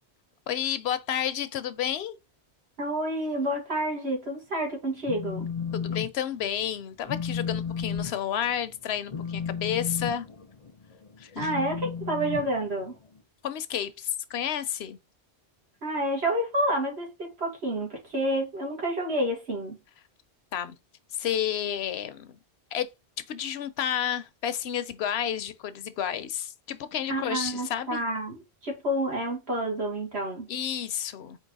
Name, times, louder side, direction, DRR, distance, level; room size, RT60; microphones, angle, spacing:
voice 1, 0.5-2.2 5.7-10.3 11.2-11.5 13.4-15.0 20.5-20.8 21.1-22.4 22.7-22.9 23.3-28.0 30.5-31.4, left 9 dB, 75° left, 0.8 m, -31 dB
voice 2, 2.8-5.5 11.4-12.9 15.8-19.8 27.1-30.5, right 1 dB, 70° right, 2.0 m, -29 dB
Telephone, 4.9-6.1 6.4-6.7 7.0-13.2, left 6 dB, 40° left, 0.5 m, -34 dB
4.5 x 2.8 x 4.0 m
omnidirectional pair, 1.1 m